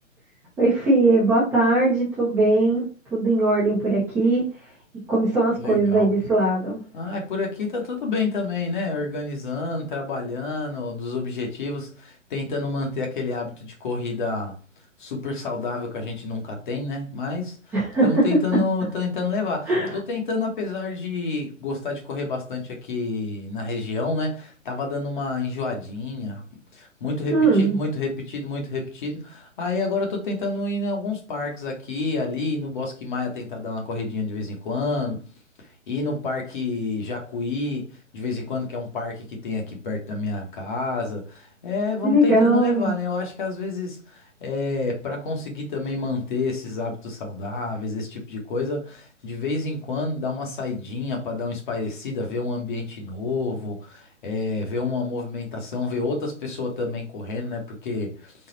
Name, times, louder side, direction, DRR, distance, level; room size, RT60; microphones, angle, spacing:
voice 1, 0.6-2.8 3.1-4.4 5.1-6.8 17.7-18.1 19.7-19.9 27.3-27.8 42.0-42.9, right 2 dB, 5° right, 0.8 m, -20 dB
voice 2, 5.6-6.1 6.9-14.6 15.0-17.6 18.0-26.4 26.7-35.2 35.6-58.3, left 3 dB, 40° left, 1.3 m, -29 dB
4.1 x 2.4 x 3.9 m
hypercardioid pair, 155°, 39 cm